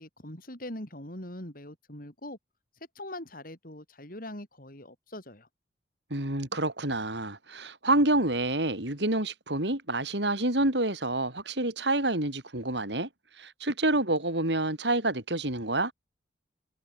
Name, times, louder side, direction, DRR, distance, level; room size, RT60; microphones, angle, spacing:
voice 1, 0.0-2.4 3.0-5.5, left 1 dB, 50° left, 5.9 m, -42 dB
voice 2, 6.1-13.1 13.4-15.9, right 2 dB, 75° right, 5.1 m, -28 dB
head